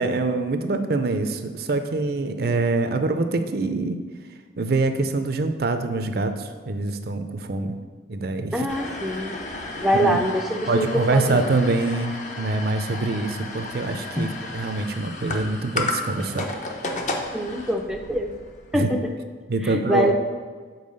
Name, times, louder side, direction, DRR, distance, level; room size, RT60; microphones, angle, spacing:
voice 1, 0.0-4.0 4.6-7.8 8.1-8.7 9.9-10.2 10.7-16.5 18.7-18.9 19.5-20.1, right 3 dB, 55° right, 8 dB, 0.5 m, -25 dB
voice 2, 8.5-9.4 9.8-11.5 14.2-14.3 17.3-18.3 18.7-19.1 19.6-20.1, equal, ahead, 2 dB, 0.4 m, -24 dB
sound 1, 8.7-19.0, left 2 dB, 40° left, 0.7 m, -33 dB
5.5 x 4.6 x 6.4 m, 1.5 s
head